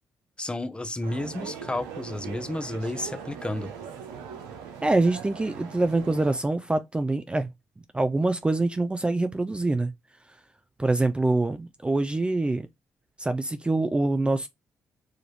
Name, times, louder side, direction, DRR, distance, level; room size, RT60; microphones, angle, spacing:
voice 1, 0.4-3.7, left 1 dB, 15° left, 0.7 m, -32 dB
sound 1, 1.0-6.4, right 7 dB, 90° right, 0.7 m, -40 dB
voice 2, 4.8-7.5 7.9-9.9 10.8-12.7 13.2-14.5, right 2 dB, 15° right, 0.4 m, -25 dB
4.9 x 2.5 x 3.0 m
supercardioid pair, 55°, 6 cm